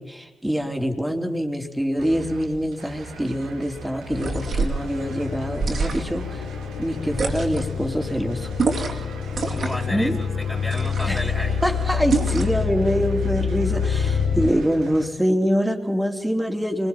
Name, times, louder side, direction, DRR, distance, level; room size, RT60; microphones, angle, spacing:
voice 1, 0.0-6.5 6.8-8.5 8.9-9.0 9.9-10.2 11.1-11.2 11.6-16.9, equal, 5° right, 4 dB, 3.4 m, -25 dB
sound 1, 2.0-15.1, right 3 dB, 80° right, 2.3 m, -41 dB
sound 2, 4.1-14.5, left 6 dB, 80° left, 1.1 m, -27 dB
sound 3, 4.1-4.8 5.5-6.2 7.1-7.7 8.6-9.1 9.3-9.9 10.7-11.3 12.1-12.6, right 4 dB, 60° right, 3.0 m, -26 dB
voice 2, 9.4-11.6, left 1 dB, 15° left, -1 dB, 4.8 m, -33 dB
25.5 x 21.0 x 5.9 m, 1.0 s
hypercardioid pair, 40°, 0 cm